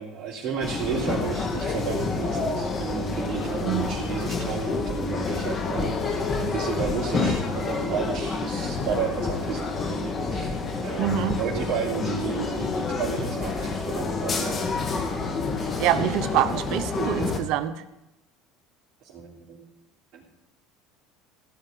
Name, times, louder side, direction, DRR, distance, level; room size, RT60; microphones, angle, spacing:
voice 1, 0.0-14.6 19.0-19.7 20.1-20.2, right 6 dB, 50° right, -5 dB, 3.4 m, -32 dB
sound 1, 0.6-17.4, left 4 dB, 35° left, 2.1 m, -28 dB
voice 2, 3.6-4.0 11.0-11.4 15.8-17.8, right 11 dB, 65° right, 11 dB, 1.0 m, -25 dB
16.0 x 5.6 x 9.8 m, 0.90 s
supercardioid pair, 100°, 0 cm